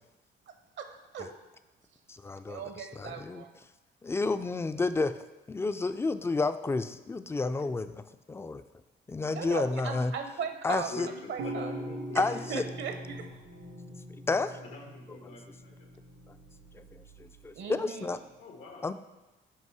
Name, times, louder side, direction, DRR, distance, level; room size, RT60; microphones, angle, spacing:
voice 1, 0.8-1.3 2.5-3.5 9.3-10.9 11.3-11.7 12.1-13.3 17.5-18.2, right 6 dB, 70° right, 6 dB, 0.8 m, -38 dB
voice 2, 2.1-3.4 4.0-5.2 5.5-8.6 9.1-10.1 10.6-11.1 12.2-12.7 14.3-14.6 15.1-15.2 16.7-16.8 17.2-18.2 18.8-18.9, left 3 dB, 15° left, 11 dB, 0.3 m, -31 dB
voice 3, 10.9-12.6 14.6-15.9 18.4-18.9, left 3 dB, 90° left, 0 dB, 1.4 m, -44 dB
sound 1, 11.4-17.5, right 1 dB, 85° right, 1.5 m, -42 dB
5.6 x 5.2 x 4.7 m, 1.1 s
cardioid pair, 90°, 20 cm